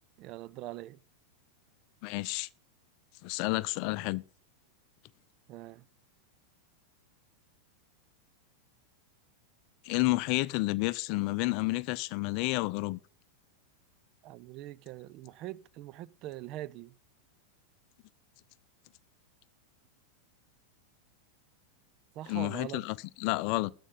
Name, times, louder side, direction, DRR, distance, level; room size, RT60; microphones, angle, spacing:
voice 1, 0.2-1.0 5.5-5.8 14.2-16.9 22.2-22.8, right 15 dB, 40° right, 0.5 m, -43 dB
voice 2, 2.0-2.5 3.2-4.2 9.8-13.0 22.3-23.7, left 21 dB, 45° left, 0.5 m, -30 dB
12.5 x 5.4 x 8.5 m
figure-of-eight pair, 90°, 0 cm